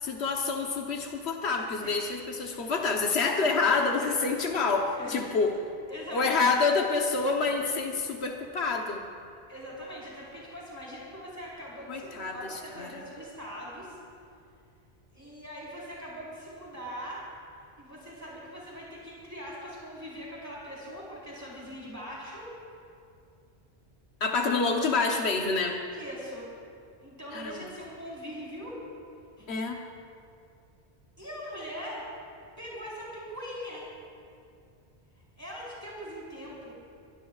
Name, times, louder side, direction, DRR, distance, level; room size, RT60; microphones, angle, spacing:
voice 1, 0.0-5.6 6.1-9.0 11.9-13.0 24.2-25.8 27.3-27.7 29.5-29.8, left 4 dB, 80° left, 1 dB, 1.4 m, -27 dB
voice 2, 5.0-5.3 5.9-6.5 9.5-14.0 15.1-17.2 17.8-22.5 24.5-24.8 25.9-26.5 27.0-28.8 29.4-29.5 31.2-32.1 32.6-33.9 35.4-36.7, equal, 15° right, -7 dB, 4.4 m, -41 dB
23.5 x 22.5 x 2.4 m, 2.4 s
omnidirectional pair, 1.1 m